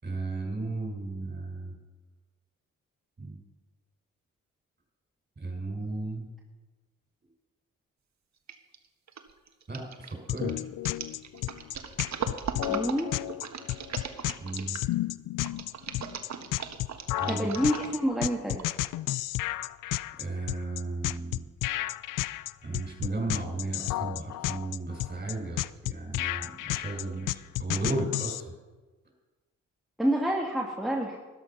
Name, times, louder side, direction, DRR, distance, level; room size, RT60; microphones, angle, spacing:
voice 1, 0.0-1.7 3.2-3.4 5.4-6.3 9.7-10.6 14.4-14.8 17.2-17.5 20.2-21.5 22.6-28.4, right 2 dB, 30° right, 2 dB, 5.6 m, -34 dB
sound 1, 8.5-8.8 9.1-14.9 15.5-18.1 18.6-18.7, right 6 dB, 55° right, 1.5 m, -38 dB
sound 2, 10.3-28.4, left 16 dB, 70° left, 0.5 m, -32 dB
voice 2, 12.7-13.1 17.3-18.6 30.0-31.2, equal, ahead, -2 dB, 2.5 m, -28 dB
13.0 x 12.0 x 5.6 m, 1.2 s
supercardioid pair, 45°, 33 cm